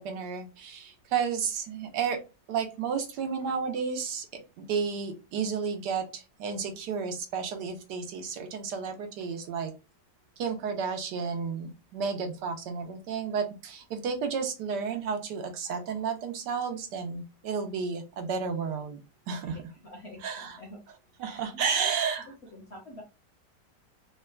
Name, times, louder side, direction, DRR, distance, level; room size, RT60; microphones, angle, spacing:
voice 1, 0.0-2.2 2.5-9.7 10.4-19.0 19.3-19.6 20.2-20.6 21.2-22.3, right 6 dB, 80° right, 6 dB, 1.3 m, -32 dB
voice 2, 19.4-20.8 21.2-21.9 22.5-23.0, left 1 dB, 55° left, 1 dB, 0.8 m, -47 dB
3.7 x 2.1 x 2.3 m, 0.29 s
omnidirectional pair, 1.8 m